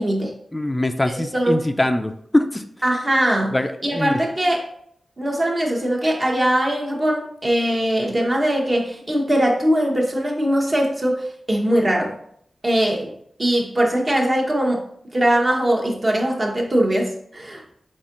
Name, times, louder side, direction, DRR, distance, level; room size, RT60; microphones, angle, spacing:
voice 1, 0.0-0.3 1.1-1.6 2.8-3.6 3.8-4.7 5.2-12.2 12.6-13.1 13.4-14.8 15.1-17.6, right 1 dB, 40° right, 0 dB, 1.0 m, -21 dB
voice 2, 0.5-2.6 3.5-4.1, left 1 dB, 20° left, 7 dB, 0.3 m, -22 dB
4.1 x 3.6 x 2.5 m, 0.67 s
cardioid pair, 45°, 0 cm